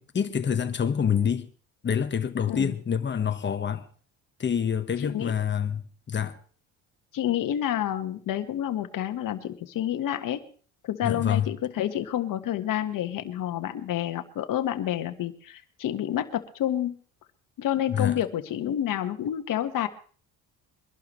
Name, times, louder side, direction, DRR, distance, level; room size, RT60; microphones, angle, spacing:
voice 1, 0.0-1.5 1.8-3.9 4.4-6.4 11.0-11.5 17.9-18.2, left 7 dB, 30° left, 1.3 m, -27 dB
voice 2, 5.0-5.3 7.1-10.4 10.8-17.0 17.6-19.9, left 11 dB, 60° left, 1.5 m, -29 dB
23.5 x 11.5 x 3.2 m
cardioid pair, 105°, 36 cm